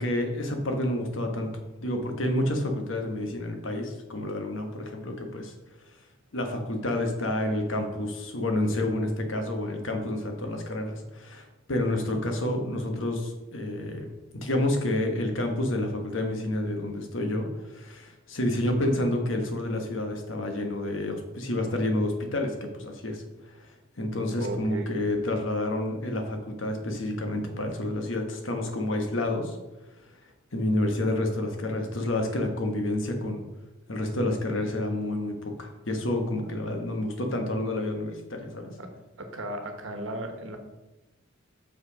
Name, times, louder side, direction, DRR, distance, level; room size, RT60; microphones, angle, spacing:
voice 1, 0.0-1.5 1.8-5.5 6.3-14.1 14.3-23.2 24.0-29.6 30.5-33.4 33.9-38.7, left 1 dB, 70° left, 4 dB, 1.3 m, -29 dB
voice 2, 24.3-24.9 38.8-38.9 39.2-40.6, right 1 dB, 75° right, 5 dB, 1.2 m, -35 dB
6.1 x 5.6 x 5.1 m, 1.0 s
head